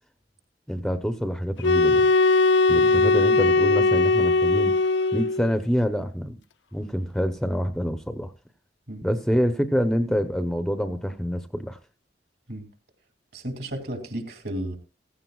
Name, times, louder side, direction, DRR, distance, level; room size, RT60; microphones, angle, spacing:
voice 1, 0.7-2.1 2.7-4.7 5.1-6.4 6.7-8.3 9.0-11.8, equal, ahead, 0.7 m, -26 dB
sound 1, 1.6-5.5, left 3 dB, 85° left, 0.6 m, -19 dB
voice 2, 2.7-3.2 8.9-9.0 12.5-12.7 13.3-14.8, right 1 dB, 60° right, 2.5 m, -34 dB
15.5 x 15.5 x 2.3 m
head